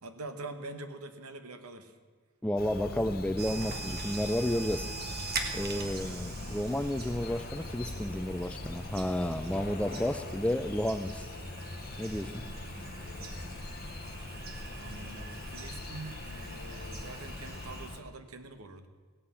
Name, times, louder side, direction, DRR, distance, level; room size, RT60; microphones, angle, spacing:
voice 1, 0.0-1.9 5.5-6.0 12.3-14.0 14.8-18.9, right 2 dB, 85° right, 8 dB, 1.1 m, -45 dB
voice 2, 2.4-4.9 5.5-11.3 12.0-12.5, left 1 dB, 5° left, 11 dB, 0.3 m, -31 dB
Bird vocalization bird call bird song, 2.6-18.0, left 2 dB, 45° left, 0.8 m, -43 dB
sound 1, 3.4-17.9, right 3 dB, 45° right, 1.2 m, -42 dB
16.0 x 5.8 x 8.2 m, 1.5 s
head